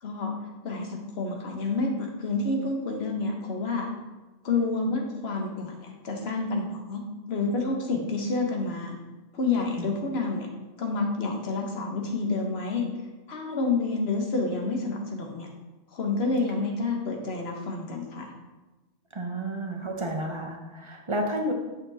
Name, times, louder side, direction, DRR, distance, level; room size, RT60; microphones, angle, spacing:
voice 1, 0.0-0.3 0.6-3.9 4.4-7.0 7.3-8.9 9.3-10.5 10.8-12.8 13.3-15.5 15.9-18.3, left 3 dB, 55° left, 1 dB, 1.2 m, -29 dB
voice 2, 19.1-21.5, right 1 dB, 30° right, 2 dB, 0.6 m, -31 dB
7.2 x 5.9 x 2.7 m, 1.1 s
omnidirectional pair, 1.3 m